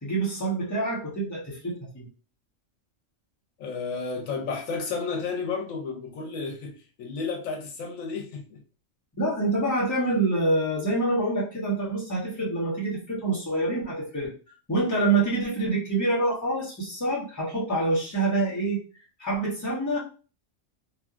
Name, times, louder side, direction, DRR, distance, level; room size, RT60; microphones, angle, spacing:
voice 1, 0.0-2.0 9.2-14.3 14.7-18.8 19.2-20.0, right 2 dB, 15° left, 1.0 m, -26 dB
voice 2, 3.6-8.6, left 4 dB, 85° left, 1.1 m, -32 dB
2.8 x 2.6 x 2.4 m
omnidirectional pair, 1.3 m